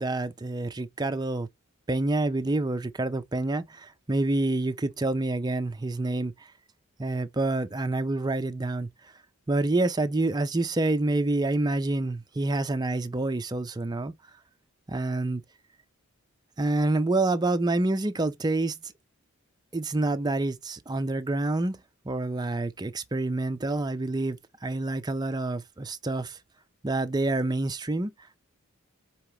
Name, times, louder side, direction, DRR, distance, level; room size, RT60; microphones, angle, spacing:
voice 1, 0.0-1.5 1.9-6.5 7.0-8.9 9.5-14.1 14.9-15.4 16.6-18.9 19.7-26.4 26.8-28.1, right 2 dB, 20° right, 0.4 m, -27 dB
4.8 x 2.9 x 3.3 m
head